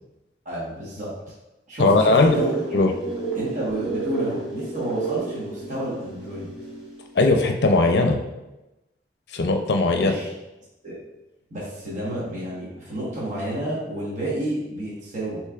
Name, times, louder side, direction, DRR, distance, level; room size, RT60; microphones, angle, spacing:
voice 1, 0.4-1.1 1.7-2.8 3.3-6.5 9.9-10.3 10.8-11.0 11.5-15.4, right 1 dB, 45° right, -7 dB, 1.3 m, -30 dB
voice 2, 1.8-2.4 2.7-2.9 7.2-8.2 9.3-10.1, left 2 dB, 65° left, 4 dB, 0.5 m, -18 dB
sound 1, 2.1-7.1, right 4 dB, 5° right, 1.4 m, -31 dB
6.4 x 3.1 x 2.4 m, 1.0 s
head